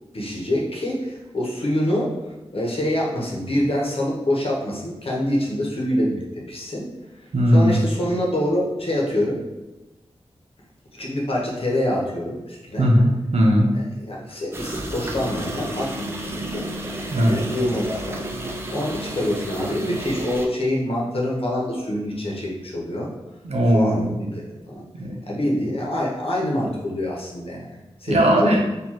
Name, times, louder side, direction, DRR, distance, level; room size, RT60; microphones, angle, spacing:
voice 1, 0.1-2.1 2.5-6.9 7.5-9.4 10.9-12.9 14.1-16.7 17.2-18.2 18.7-23.1 23.7-24.8 25.3-27.7 28.0-28.6, left 1 dB, 60° left, -4 dB, 1.0 m, -25 dB
voice 2, 7.3-7.9 12.8-13.7 17.1-17.4 23.4-24.1 24.9-25.2 28.1-28.6, equal, 75° right, -1 dB, 0.8 m, -18 dB
sound 1, 14.5-20.5, right 1 dB, 20° right, 0.5 m, -31 dB
4.6 x 2.6 x 2.9 m, 1.1 s
wide cardioid pair, 85°, 11 cm